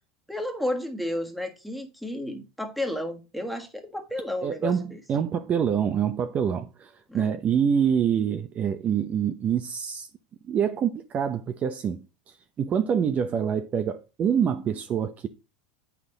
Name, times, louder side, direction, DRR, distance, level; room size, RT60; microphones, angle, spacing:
voice 1, 0.3-5.0 7.1-7.3, left 1 dB, ahead, 1.6 m, -32 dB
voice 2, 4.4-10.1 10.5-15.3, right 8 dB, 35° right, 0.8 m, -26 dB
8.0 x 5.9 x 3.9 m
hypercardioid pair, 110°, 5 cm